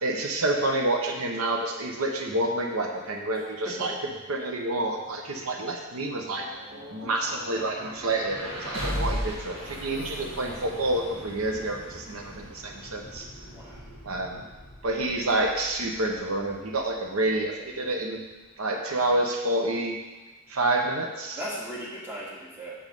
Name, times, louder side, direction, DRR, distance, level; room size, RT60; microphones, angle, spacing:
voice 1, 0.0-3.9 4.3-6.5 6.9-13.3 14.0-14.4 14.8-18.2 18.6-19.9 20.5-21.4, right 2 dB, 90° right, 2 dB, 0.9 m, -28 dB
sound 1, 5.8-17.8, equal, 60° right, 2.2 m, -39 dB
voice 2, 13.5-13.8 21.4-22.7, right 1 dB, 10° right, -7 dB, 2.0 m, -37 dB
7.2 x 5.2 x 5.3 m, 1.2 s
head